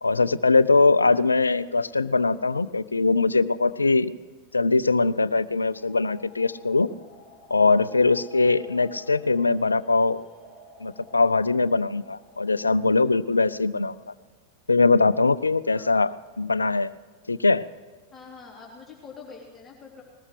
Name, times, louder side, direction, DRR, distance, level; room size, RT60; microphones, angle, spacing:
voice 1, 0.0-4.1 4.5-6.9 7.5-10.2 10.8-13.9 14.7-16.9 17.3-17.6, left 3 dB, 80° left, 18 dB, 0.4 m, -21 dB
sound 1, 5.5-13.2, left 2 dB, 15° right, 3.4 m, -52 dB
voice 2, 15.6-16.0 18.1-20.0, left 5 dB, 15° left, -5 dB, 3.3 m, -45 dB
20.5 x 19.5 x 3.2 m, 1.5 s
figure-of-eight pair, 90°, 0 cm